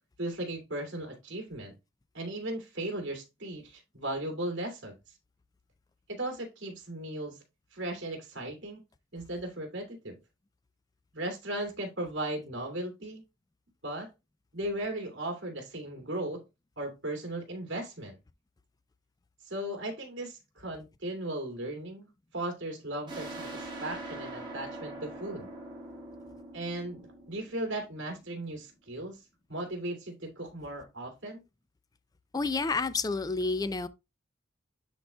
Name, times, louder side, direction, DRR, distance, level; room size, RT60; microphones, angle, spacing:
voice 1, 0.2-1.7 2.1-5.0 6.1-7.4 7.7-8.8 9.1-10.2 11.1-13.2 13.8-14.1 14.5-16.4 16.8-18.1 19.4-25.5 26.5-29.2 29.5-31.4, right 1 dB, 60° right, 2.4 m, -37 dB
sound 1, 23.1-28.4, right 2 dB, 20° right, 2.0 m, -43 dB
voice 2, 32.3-33.9, left 3 dB, 20° left, 0.3 m, -29 dB
10.5 x 4.1 x 2.2 m
head